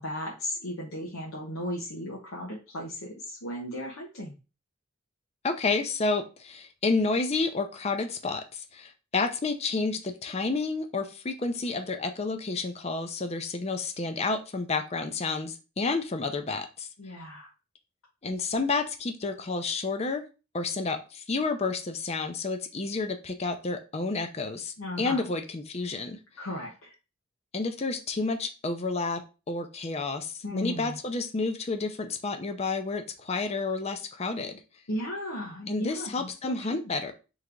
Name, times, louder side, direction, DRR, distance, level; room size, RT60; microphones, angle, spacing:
voice 1, 0.0-4.4 17.0-17.5 24.8-25.2 26.4-26.9 30.4-31.0 34.9-36.9, left 1 dB, 80° left, -3 dB, 0.9 m, -36 dB
voice 2, 5.4-16.9 18.2-20.2 20.5-26.2 27.5-29.2 29.5-34.6 35.7-37.1, left 3 dB, 30° left, 7 dB, 0.5 m, -30 dB
3.4 x 3.2 x 3.7 m, 0.31 s
head